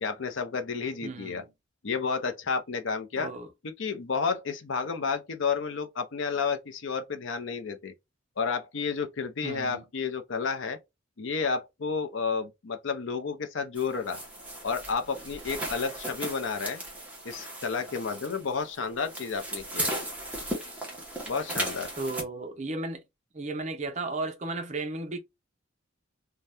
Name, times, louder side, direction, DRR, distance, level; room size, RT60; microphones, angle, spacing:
voice 1, 0.0-1.4 1.8-3.3 3.8-7.9 8.4-10.8 11.2-14.2 14.6-16.8 17.2-19.9 21.3-21.9, left 5 dB, 65° left, 0.6 m, -31 dB
voice 2, 1.0-1.5 3.2-3.5 9.4-9.9 22.0-23.0 23.3-25.2, right 2 dB, 35° right, 0.5 m, -34 dB
sound 1, 13.8-22.2, right 1 dB, 5° right, 0.9 m, -36 dB
2.7 x 2.2 x 3.3 m
head